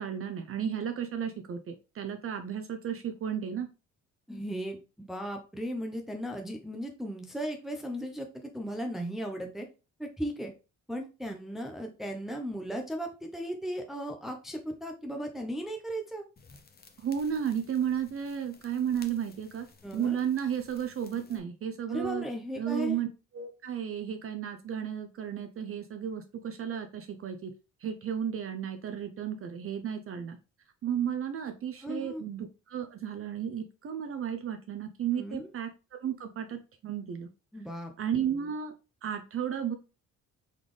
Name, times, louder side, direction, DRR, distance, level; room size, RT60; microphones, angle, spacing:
voice 1, 0.0-3.7 17.0-19.7 19.9-22.2 22.6-23.1 23.3-27.5 27.8-30.4 30.8-37.3 38.0-38.7 39.0-39.7, right 8 dB, 45° right, 6 dB, 0.6 m, -33 dB
voice 2, 4.3-4.8 5.1-9.7 10.0-10.5 10.9-16.2 19.8-20.2 21.9-23.0 31.8-32.2 35.2-35.5 37.5-37.9, equal, ahead, 3 dB, 0.7 m, -36 dB
sound 1, 16.4-21.4, left 4 dB, 30° left, 0.8 m, -56 dB
4.1 x 3.5 x 3.2 m, 0.31 s
cardioid pair, 90°, 30 cm